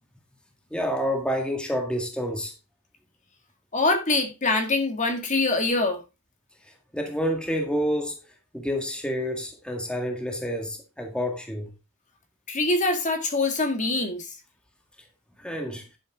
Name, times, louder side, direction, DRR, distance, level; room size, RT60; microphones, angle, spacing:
voice 1, 0.7-2.5 6.9-8.2 8.5-11.7 15.4-15.8, equal, 5° left, 1.9 m, -28 dB
voice 2, 3.7-6.0 12.5-14.3, left 2 dB, 35° left, 2.1 m, -24 dB
11.5 x 7.9 x 3.6 m
head